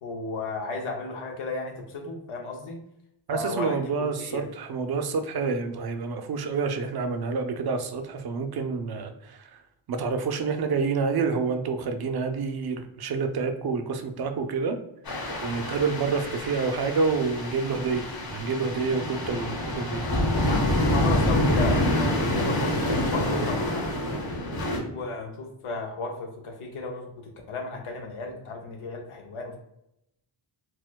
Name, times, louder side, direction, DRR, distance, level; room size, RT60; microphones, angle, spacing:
voice 1, 0.0-2.8 3.3-4.5 20.9-23.9 24.9-29.6, left 3 dB, 85° left, 2 dB, 0.7 m, -34 dB
voice 2, 3.3-9.6 9.9-14.8 15.4-20.0, right 4 dB, 50° right, 7 dB, 0.5 m, -28 dB
sound 1, 15.1-24.8, left 1 dB, 45° left, 0.8 m, -27 dB
4.2 x 2.1 x 2.2 m, 0.80 s
wide cardioid pair, 110°, 49 cm